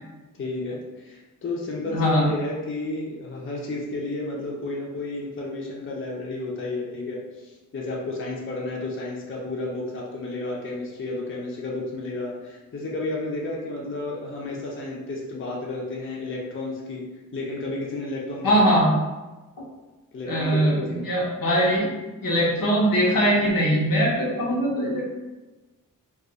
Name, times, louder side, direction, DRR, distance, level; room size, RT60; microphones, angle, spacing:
voice 1, 0.3-17.0 17.3-18.7 20.1-21.1, left 2 dB, 35° left, -3 dB, 0.5 m, -32 dB
voice 2, 1.9-2.3 18.4-18.9 20.3-21.9 22.2-25.1, equal, 80° left, -4 dB, 0.9 m, -21 dB
2.4 x 2.2 x 3.9 m, 1.2 s
wide cardioid pair, 140°, 33 cm